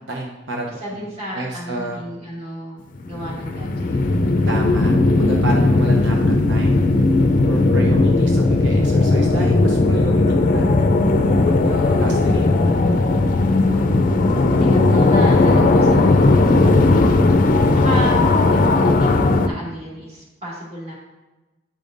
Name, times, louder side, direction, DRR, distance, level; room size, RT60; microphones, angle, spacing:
voice 1, 0.1-1.0 1.3-2.0 4.5-6.8 7.4-10.6 11.3-12.4, right 1 dB, 80° right, 0 dB, 0.8 m, -30 dB
voice 2, 0.8-4.0 5.4-5.5 7.6-7.7 11.7-12.1 13.6-14.0 14.6-20.9, equal, 35° right, -6 dB, 2.2 m, -33 dB
sound 1, 2.9-19.5, left 2 dB, 45° left, 0.4 m, -16 dB
8.9 x 5.2 x 2.6 m, 1.1 s
head